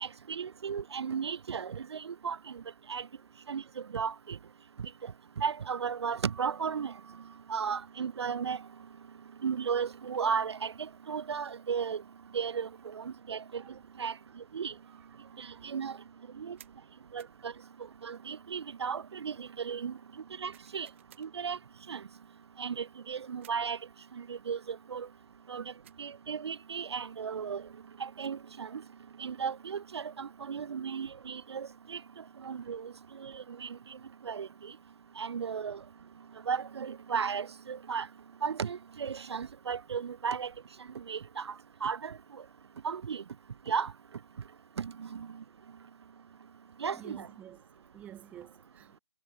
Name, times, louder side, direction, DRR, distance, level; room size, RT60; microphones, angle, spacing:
voice 1, 0.0-2.4 2.9-3.0 3.5-3.6 3.9-4.4 5.4-6.9 7.5-8.6 9.4-10.7 11.1-12.0 12.3-12.7 12.9-13.6 14.0-14.1 14.5-14.7 15.4-16.0 16.4-16.6 17.1-17.5 18.0-19.9 20.4-20.9 21.2-21.6 21.9-22.0 22.6-23.8 24.3-24.6 24.9-25.1 25.5-25.6 26.0-27.6 28.0-28.8 29.2-32.0 32.4-32.9 33.2-33.7 34.3-34.5 35.2-35.8 36.5-38.1 38.4-40.5 41.1-41.5 41.8-42.1 42.8-43.2 43.7-43.9 44.8-45.3 46.8-47.3, right 6 dB, 70° right, 0.4 m, -34 dB
voice 2, 14.7-15.9 30.6-30.7 35.1-35.2 46.9-49.0, right 11 dB, 10° right, 1.4 m, -53 dB
sound 1, 16.6-16.8 17.2-17.4 20.5-21.3 23.4-23.7 25.8-26.1 28.0-28.4, right 12 dB, 25° right, 0.7 m, -58 dB
hypercardioid pair, 155°, 15 cm